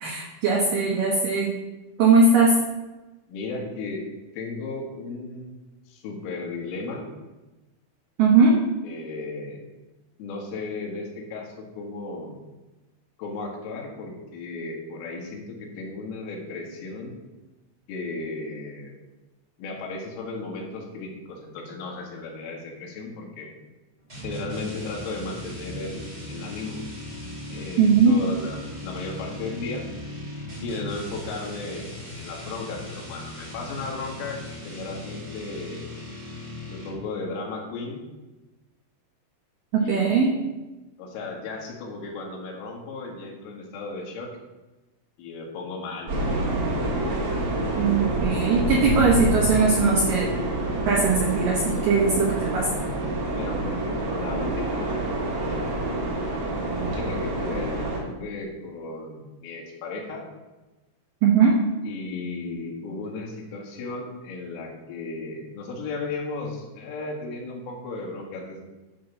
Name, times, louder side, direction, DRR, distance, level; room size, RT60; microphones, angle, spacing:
voice 1, 0.0-1.5 2.0-2.5 8.2-8.5 27.8-28.1 39.7-40.3 47.8-50.3 50.9-52.7 61.2-61.6, right 4 dB, 80° right, -1 dB, 1.9 m, -20 dB
voice 2, 3.3-4.1 4.3-5.5 5.9-7.1 8.8-9.6 10.2-12.4 13.2-17.2 17.9-18.9 19.6-23.5 24.2-26.8 27.5-29.9 30.6-35.9 36.7-38.0 39.8-40.4 41.0-44.3 45.2-46.1 53.3-54.9 55.3-55.8 56.8-60.2 61.8-68.6, left 3 dB, 85° left, 0 dB, 4.3 m, -35 dB
sound 1, 24.1-37.2, left 1 dB, 20° right, 2.0 m, -38 dB
sound 2, 46.1-58.0, right 2 dB, 55° right, 1.6 m, -27 dB
12.0 x 4.0 x 7.0 m, 1.1 s
omnidirectional pair, 5.7 m